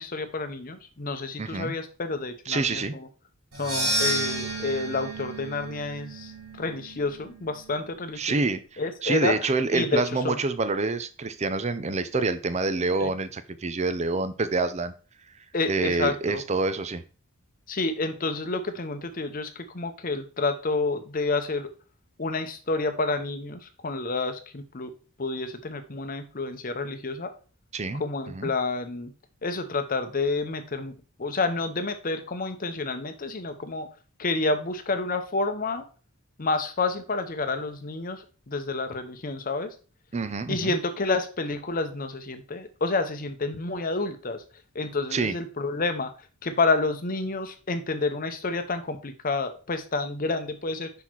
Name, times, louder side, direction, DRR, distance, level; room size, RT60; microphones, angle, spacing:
voice 1, 0.0-3.1 3.6-8.4 8.8-10.4 13.0-13.1 15.5-16.4 17.7-21.7 22.2-24.9 25.2-27.3 27.9-29.1 29.4-30.9 31.2-33.9 34.2-35.8 36.4-39.8 40.5-44.4 44.7-50.9, left 3 dB, 40° left, 8 dB, 0.8 m, -29 dB
voice 2, 1.4-1.7 2.5-2.9 8.2-14.9 15.7-17.0 27.7-28.0 28.3-28.5 40.1-40.7 45.1-45.4, right 3 dB, 30° right, 13 dB, 0.5 m, -27 dB
sound 1, 3.5-7.9, right 1 dB, 65° right, 2.0 m, -31 dB
5.7 x 4.2 x 4.5 m, 0.36 s
head